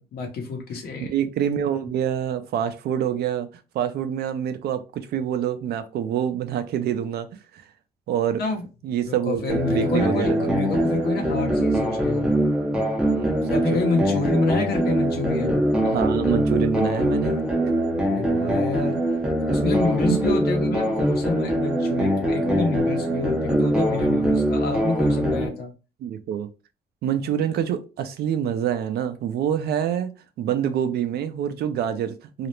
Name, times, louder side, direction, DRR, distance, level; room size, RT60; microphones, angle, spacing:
voice 1, 0.0-1.1 8.4-8.6 9.1-12.3 13.5-15.6 18.2-19.0 19.5-25.7, left 3 dB, 65° left, 3 dB, 0.8 m, -28 dB
voice 2, 1.0-3.5 3.7-7.3 7.5-7.6 8.1-8.4 8.8-10.5 13.1-13.8 15.8-17.4 20.1-20.2 25.2-25.3 26.0-26.5 27.0-32.5, right 9 dB, 70° right, 10 dB, 0.4 m, -26 dB
sound 1, 9.5-25.5, right 1 dB, 5° right, 0.4 m, -23 dB
2.4 x 2.0 x 2.9 m, 0.30 s
cardioid pair, 150°, 17 cm